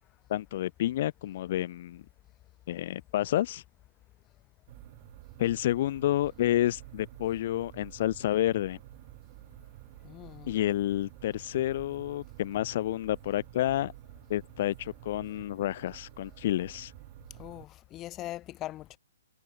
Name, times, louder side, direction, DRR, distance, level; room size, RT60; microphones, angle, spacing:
voice 1, 0.3-2.0 2.7-3.6 5.4-8.8 10.5-13.9 14.3-16.9, left 13 dB, 45° left, 0.5 m, -29 dB
sound 1, 4.7-17.6, right 22 dB, 35° right, 4.0 m, -50 dB
voice 2, 10.0-10.5 17.4-19.0, left 15 dB, 20° left, 1.2 m, -41 dB
hypercardioid pair, 155°, 0 cm